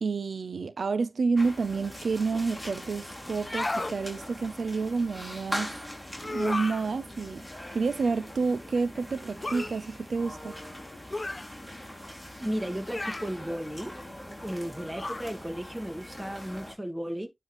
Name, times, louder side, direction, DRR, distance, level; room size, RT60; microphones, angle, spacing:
voice 1, 0.0-5.7 6.2-7.4 7.7-10.6, right 4 dB, 90° right, 0.5 m, -29 dB
sound 1, 1.4-16.7, left 1 dB, 5° left, 3.5 m, -42 dB
sound 2, 3.3-4.0 6.2-6.9 9.4-9.7 11.1-11.5 12.9-13.3 14.9-15.3, left 2 dB, 35° left, 0.4 m, -33 dB
voice 2, 12.4-13.9 14.4-17.3, equal, 10° right, 1.9 m, -34 dB
9.8 x 3.5 x 3.0 m
wide cardioid pair, 70°, 0 cm